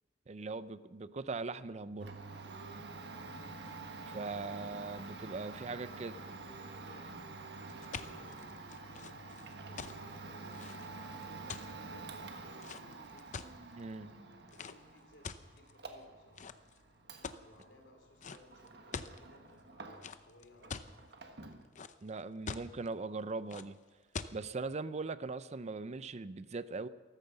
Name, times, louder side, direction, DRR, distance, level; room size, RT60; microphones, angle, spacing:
voice 1, 0.3-2.1 4.1-6.1 13.8-14.1 22.0-23.8 24.3-26.9, right 3 dB, 40° right, 15 dB, 0.5 m, -40 dB
voice 2, 1.9-2.3 4.2-4.4 6.4-7.1 7.7-10.7 11.2-13.5 14.0-16.5 17.4-21.1, left 1 dB, 85° left, 3 dB, 3.3 m, -61 dB
Domestic sounds home sounds, 2.0-20.3 20.6-21.7, right 3 dB, 65° right, 1.5 m, -48 dB
sound 1, 7.7-13.8 14.5-14.8 15.2-15.9 16.4-16.8 17.2-17.6 18.2-18.4 18.7-19.2 20.0-20.9 21.4-22.1 22.5-22.9 23.5-23.6 24.1-24.3, left 5 dB, 45° left, 0.7 m, -44 dB
14.0 x 14.0 x 6.9 m, 1.3 s
head